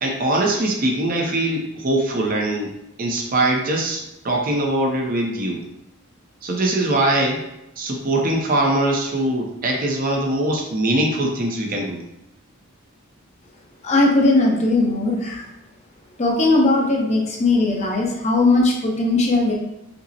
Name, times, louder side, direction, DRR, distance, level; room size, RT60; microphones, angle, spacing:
voice 1, 0.0-2.7 3.0-5.6 6.4-7.4 7.8-12.0, right 1 dB, 45° right, 1 dB, 0.5 m, -22 dB
voice 2, 13.8-15.4 16.2-19.5, left 2 dB, 35° left, -1 dB, 0.6 m, -18 dB
5.1 x 2.0 x 2.7 m, 0.89 s
head